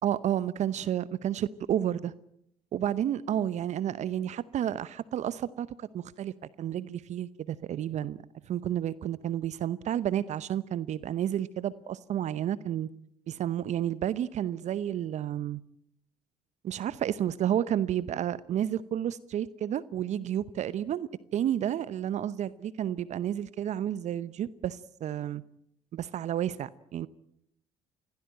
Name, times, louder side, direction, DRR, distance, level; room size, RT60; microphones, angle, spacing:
voice 1, 0.0-2.1 2.7-6.3 6.6-12.9 13.3-15.6 16.6-25.4 25.9-27.1, right 10 dB, 55° right, 0.8 m, -31 dB
24.5 x 16.5 x 9.1 m
hypercardioid pair, 55°, 14 cm